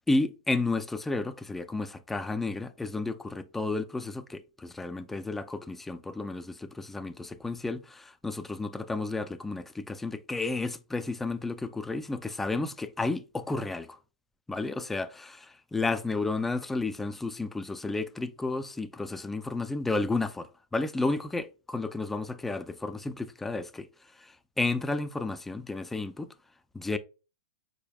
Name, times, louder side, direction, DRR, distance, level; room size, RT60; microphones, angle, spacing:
voice 1, 0.1-14.0 14.5-15.2 15.7-23.9 24.2-26.3 26.7-27.0, left 3 dB, 5° left, 0.4 m, -32 dB
5.2 x 4.2 x 2.3 m
hypercardioid pair, 125°, 4 cm